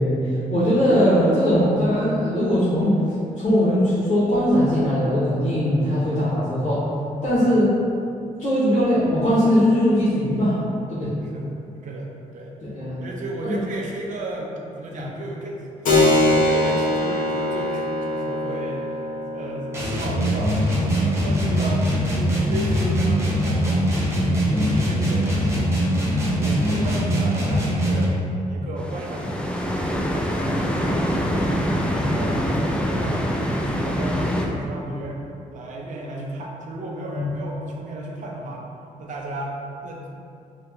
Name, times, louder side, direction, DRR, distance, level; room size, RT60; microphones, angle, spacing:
voice 1, 0.0-3.0 3.4-6.8 7.2-7.7 8.4-10.6 10.9-11.1 12.7-13.0 13.4-13.6 14.9-15.0 24.5-24.7 26.3-26.6 37.2-37.3, equal, 65° left, -11 dB, 0.9 m, -20 dB
voice 2, 11.2-11.5 11.8-12.5 13.0-18.9 19.3-23.9 24.2-25.7 26.2-28.2 28.5-31.5 31.8-35.2 35.5-38.6 39.0-40.1, right 1 dB, 65° right, -1 dB, 0.5 m, -34 dB
Keyboard (musical), 15.8-24.1, left 1 dB, 90° left, 0.7 m, -25 dB
sound 1, 19.7-28.2, equal, 20° right, 0.7 m, -22 dB
sound 2, 28.8-34.5, equal, 5° left, 0.3 m, -24 dB
2.9 x 2.2 x 3.4 m, 2.6 s
cardioid pair, 95°, 14 cm